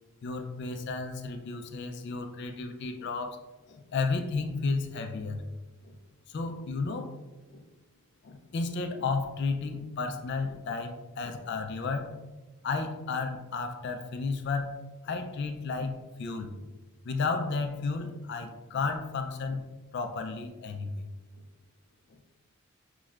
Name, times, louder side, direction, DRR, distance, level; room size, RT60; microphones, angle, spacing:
voice 1, 0.2-3.4 3.7-5.4 5.8-6.0 6.3-7.1 7.5-7.6 8.2-12.2 12.6-14.8 15.0-16.7 17.0-19.7 19.9-21.0 21.3-21.5 22.1-22.2, left 4 dB, 50° left, 6 dB, 0.3 m, -33 dB
5.9 x 2.1 x 2.3 m, 1.2 s
head